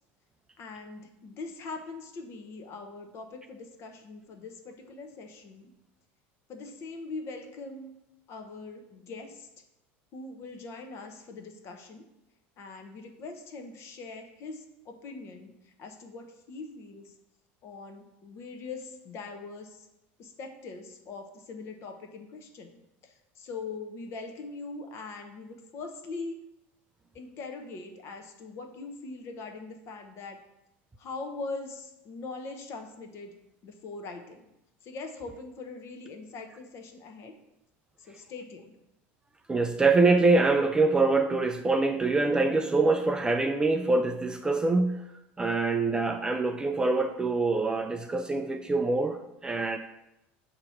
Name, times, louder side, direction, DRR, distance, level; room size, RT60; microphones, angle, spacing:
voice 1, 0.6-5.6 6.5-7.9 8.3-9.5 10.1-12.0 12.6-15.5 15.8-17.1 17.6-19.8 20.2-22.7 23.4-26.4 27.1-30.4 31.0-33.3 33.6-34.4 34.8-37.3 38.0-38.8, left 3 dB, 45° left, 5 dB, 0.9 m, -41 dB
voice 2, 39.5-45.0 45.4-49.8, right 3 dB, 10° right, 7 dB, 0.3 m, -25 dB
7.6 x 2.9 x 5.7 m, 0.89 s
supercardioid pair, 130°, 6 cm